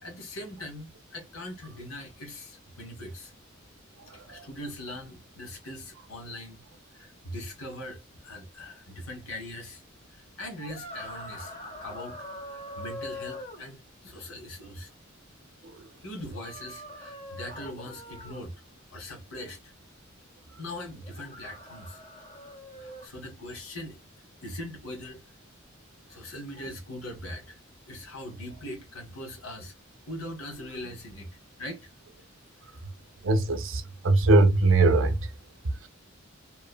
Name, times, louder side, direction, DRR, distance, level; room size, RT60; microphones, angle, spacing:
voice 1, 0.0-3.3 4.1-6.6 6.9-9.8 10.1-11.5 11.8-12.2 12.5-14.9 16.0-18.5 18.9-19.7 20.6-22.0 22.8-24.0 24.4-25.2 26.1-27.6 27.9-29.7 30.1-31.9, left 1 dB, 90° left, 1.2 m, -41 dB
sound 1, 10.7-13.6 16.3-18.4 21.0-23.1, left 1 dB, 30° left, 1.0 m, -42 dB
voice 2, 33.2-35.2, right 2 dB, 65° right, 0.6 m, -21 dB
2.9 x 2.1 x 2.3 m
head